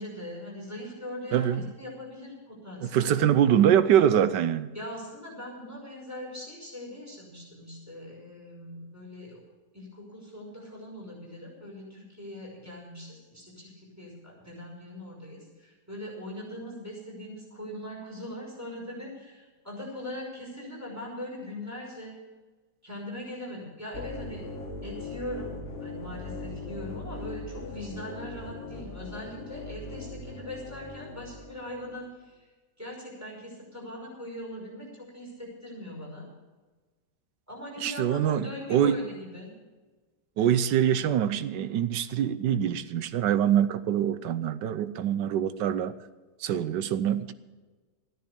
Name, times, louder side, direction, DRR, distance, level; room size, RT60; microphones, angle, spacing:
voice 1, 0.0-3.2 4.7-9.4 9.7-22.1 22.8-24.4 24.8-25.6 25.8-32.5 32.8-36.3 37.5-39.5, left 1 dB, 10° right, 5.6 m, -41 dB
voice 2, 1.3-1.6 2.8-4.7 37.8-39.0 40.4-45.9 46.4-47.3, right 10 dB, 90° right, 1.4 m, -24 dB
sound 1, 23.9-32.0, left 2 dB, 35° left, 1.8 m, -40 dB
14.5 x 10.0 x 7.0 m
omnidirectional pair, 1.8 m